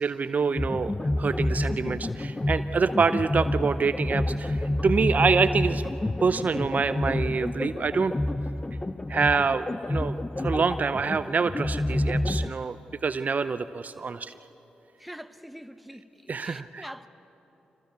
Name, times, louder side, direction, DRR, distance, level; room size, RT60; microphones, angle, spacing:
voice 1, 0.0-8.1 9.1-12.8 13.0-14.3 16.3-16.9, right 5 dB, 50° right, 13 dB, 0.6 m, -26 dB
sound 1, 0.6-12.5, left 1 dB, 25° left, 0.6 m, -29 dB
voice 2, 15.0-16.0 16.4-17.1, equal, ahead, 9 dB, 1.2 m, -43 dB
25.5 x 17.5 x 8.2 m, 3.0 s
supercardioid pair, 45°, 3 cm